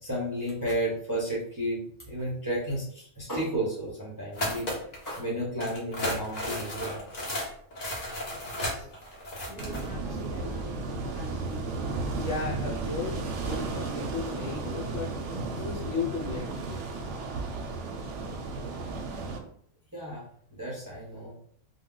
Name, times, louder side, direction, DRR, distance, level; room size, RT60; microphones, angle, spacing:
voice 1, 0.0-1.8 2.1-4.7 5.1-6.9 9.5-10.7 11.0-11.6 19.9-20.2 20.5-21.3, right 1 dB, 25° right, -7 dB, 0.5 m, -33 dB
sound 1, 4.3-5.2 5.6-9.9, left 1 dB, 40° left, 0.7 m, -34 dB
sound 2, 9.6-19.4, right 3 dB, 70° right, 0.8 m, -34 dB
voice 2, 12.1-15.1 15.5-16.8, left 4 dB, 65° left, -2 dB, 1.0 m, -35 dB
2.3 x 2.1 x 3.7 m, 0.64 s
omnidirectional pair, 1.4 m